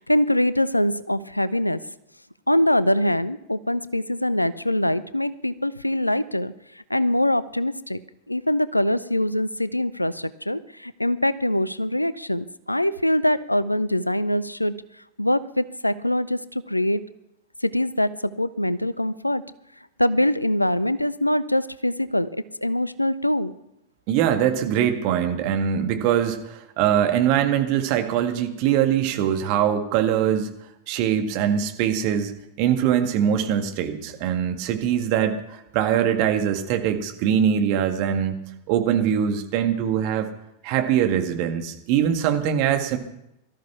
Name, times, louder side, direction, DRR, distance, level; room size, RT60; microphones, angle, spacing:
voice 1, 0.0-1.8 2.5-6.5 6.9-8.0 8.3-14.8 15.2-17.0 17.6-19.4 20.0-23.5, left 1 dB, 85° left, 17 dB, 0.6 m, -23 dB
voice 2, 24.1-30.5 30.9-32.3 32.6-38.4 38.7-40.3 40.6-43.0, right 9 dB, 45° right, 5 dB, 1.9 m, -22 dB
18.5 x 13.5 x 5.8 m, 0.84 s
figure-of-eight pair, 90°, 0 cm